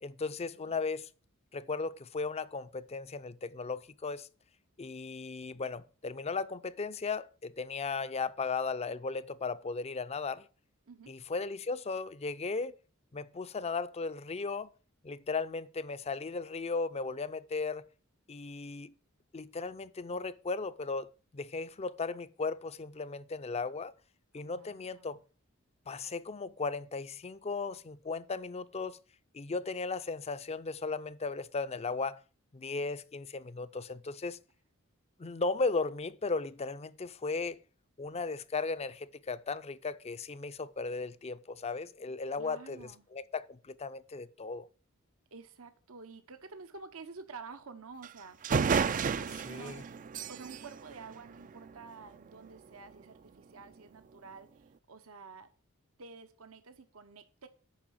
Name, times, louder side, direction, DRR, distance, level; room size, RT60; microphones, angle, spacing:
voice 1, 0.0-1.1 1.5-4.3 4.8-10.5 11.1-12.7 13.1-14.7 15.0-17.8 18.3-18.9 19.3-23.9 24.3-25.2 25.9-29.0 29.3-32.2 32.5-34.4 35.2-37.6 38.0-44.7 49.5-49.8, left 4 dB, 30° left, 0.5 m, -36 dB
voice 2, 24.4-25.2 42.0-43.0 45.3-48.4 49.1-55.5 56.0-57.5, right 4 dB, 75° right, 1.0 m, -50 dB
sound 1, 48.0-48.1 48.4-51.9, right 6 dB, 40° right, 0.4 m, -32 dB
8.9 x 5.5 x 7.5 m
head